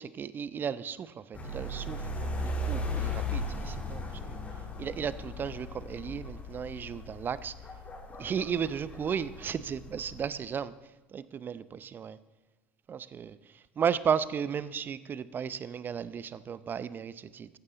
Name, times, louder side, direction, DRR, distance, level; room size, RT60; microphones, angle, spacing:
voice 1, 0.0-4.4 4.8-7.5 8.2-10.7 11.1-12.2 12.9-13.4 13.8-17.5, right 7 dB, 35° right, 16 dB, 0.7 m, -34 dB
sound 1, 1.3-10.3, left 1 dB, 25° left, 3.6 m, -37 dB
15.5 x 14.0 x 4.0 m, 1.1 s
figure-of-eight pair, 65°, 6 cm